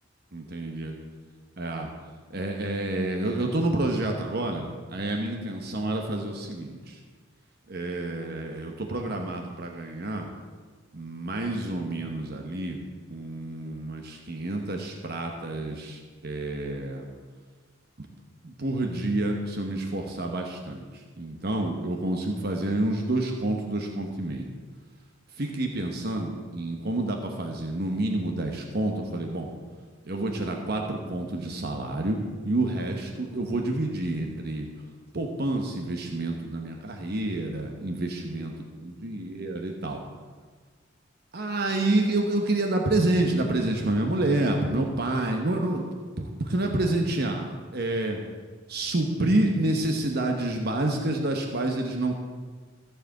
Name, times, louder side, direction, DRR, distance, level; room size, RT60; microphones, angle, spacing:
voice 1, 0.3-1.0 1.6-1.9 2.3-7.0 7.7-10.3 10.9-12.8 13.1-17.1 18.0-18.1 18.4-24.5 25.4-29.5 30.0-32.2 32.4-34.7 35.1-38.5 38.8-40.0 41.3-48.2 48.7-52.1, right 2 dB, 55° right, 2 dB, 1.0 m, -28 dB
14.5 x 4.8 x 7.6 m, 1.5 s
head